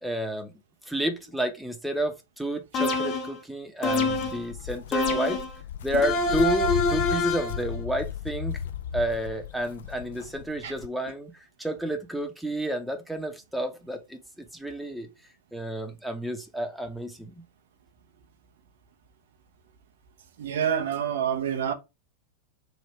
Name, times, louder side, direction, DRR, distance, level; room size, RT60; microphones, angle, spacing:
voice 1, 0.0-0.5 0.9-5.4 5.8-8.6 8.9-14.2 14.5-15.1 15.5-17.4, right 1 dB, ahead, 0.8 m, -30 dB
sound 1, 2.7-3.4 3.8-4.5 4.9-5.6 6.0-7.6, left 3 dB, 35° left, 0.8 m, -26 dB
Walk footsteps, 3.8-10.9, left 9 dB, 60° left, 0.4 m, -35 dB
voice 2, 20.4-21.7, right 8 dB, 60° right, 0.7 m, -27 dB
3.3 x 2.6 x 4.3 m
figure-of-eight pair, 90°, 0 cm